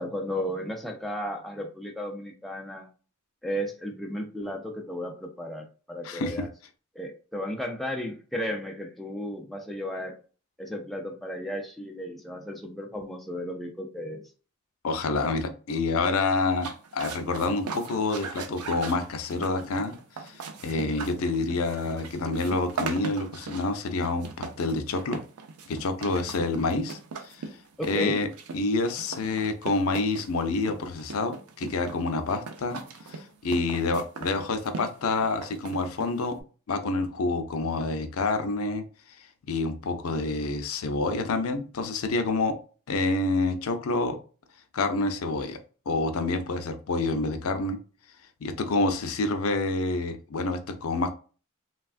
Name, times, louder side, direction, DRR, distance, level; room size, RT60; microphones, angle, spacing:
voice 1, 0.0-2.9 3.4-6.5 7.0-10.2 10.6-14.2 27.8-28.2, equal, ahead, 0 dB, 0.3 m, -34 dB
voice 2, 6.0-6.5 14.8-19.9 20.2-25.2 25.7-27.4 27.8-28.3 28.5-32.8 33.1-36.4 36.7-38.8 39.5-42.6 42.9-44.2 44.7-45.6 45.9-47.8 48.4-51.1, left 3 dB, 70° left, 7 dB, 0.5 m, -28 dB
sound 1, 16.5-36.4, right 4 dB, 85° right, 0.5 m, -39 dB
3.2 x 2.3 x 2.4 m, 0.37 s
head